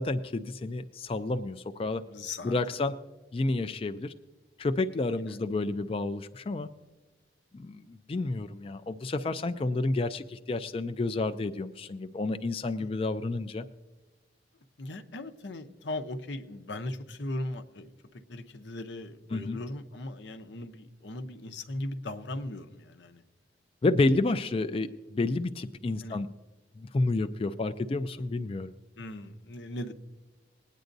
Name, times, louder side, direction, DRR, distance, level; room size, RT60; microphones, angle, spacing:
voice 1, 0.0-2.0 2.4-2.9 3.3-4.1 4.6-6.7 7.5-13.6 19.3-19.6 23.8-26.3 26.8-28.7, left 2 dB, 30° left, 9 dB, 0.4 m, -30 dB
voice 2, 2.1-2.6 12.8-12.9 14.8-23.2 26.0-26.2 29.0-29.9, left 1 dB, 85° left, 8 dB, 0.8 m, -38 dB
21.0 x 9.2 x 2.6 m, 1.2 s
head